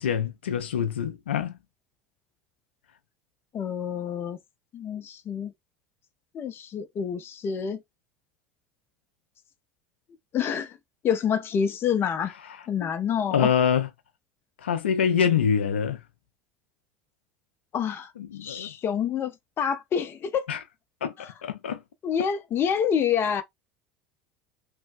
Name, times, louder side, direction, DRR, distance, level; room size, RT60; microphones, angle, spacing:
voice 1, 0.0-1.6 12.5-12.9 13.3-13.9 14.6-16.0 18.2-18.7 20.5-20.6 21.0-21.1 21.4-21.8, left 7 dB, 90° left, 0.4 m, -25 dB
voice 2, 3.5-4.4 4.7-5.5 6.3-7.8 10.3-10.8 11.0-12.3 12.7-13.5 17.7-18.1 18.4-20.4 21.2-21.3 22.0-23.4, left 8 dB, 40° left, 0.6 m, -27 dB
3.1 x 2.2 x 2.6 m
hypercardioid pair, 80°, 6 cm